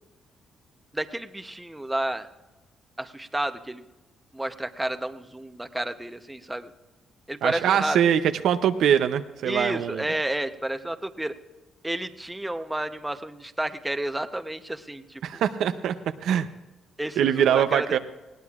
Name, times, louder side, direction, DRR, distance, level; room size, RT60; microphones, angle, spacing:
voice 1, 0.9-2.3 3.0-3.8 4.3-6.7 7.3-8.0 9.4-11.4 11.8-15.4 17.0-18.0, right 1 dB, 10° right, 9 dB, 0.8 m, -31 dB
voice 2, 7.4-10.0 15.2-16.0 16.2-16.5 17.2-18.0, right 9 dB, 75° right, 9 dB, 0.6 m, -23 dB
20.0 x 17.0 x 2.4 m, 1.1 s
cardioid pair, 90°, 0 cm